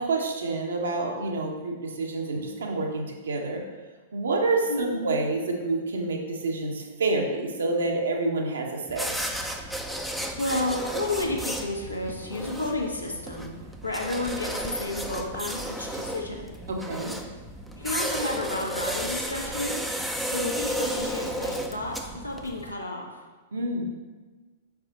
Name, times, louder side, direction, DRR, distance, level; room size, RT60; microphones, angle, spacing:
voice 1, 0.0-3.6 4.1-9.2 16.7-17.2 23.5-23.9, right 2 dB, 65° right, 2 dB, 1.0 m, -28 dB
sound 1, 8.9-22.7, right 1 dB, ahead, 0.5 m, -33 dB
voice 2, 10.1-13.5 13.8-16.5 17.8-23.2, left 2 dB, 85° left, -1 dB, 1.1 m, -31 dB
5.9 x 4.8 x 3.9 m, 1.3 s
figure-of-eight pair, 100°, 0 cm